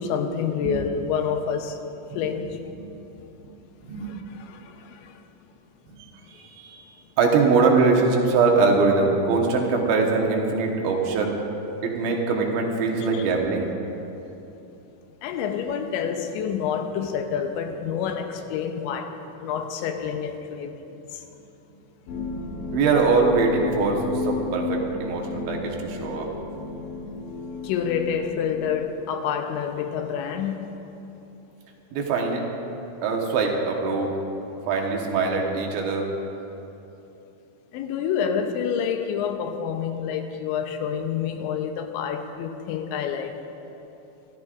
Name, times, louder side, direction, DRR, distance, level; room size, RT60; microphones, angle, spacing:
voice 1, 0.0-1.8 2.2-2.6 4.0-5.2 15.2-20.8 21.1-21.2 27.6-30.8 37.7-43.4, left 7 dB, 90° left, 6 dB, 3.0 m, -28 dB
voice 2, 3.8-4.1 6.3-6.8 7.2-11.3 11.8-13.7 22.7-26.3 31.9-32.4 33.0-34.2 34.7-36.1, right 4 dB, 80° right, 0 dB, 3.5 m, -22 dB
sound 1, 22.1-28.8, left 3 dB, 70° left, 3.5 m, -33 dB
26.5 x 12.5 x 2.5 m, 3.0 s
omnidirectional pair, 5.2 m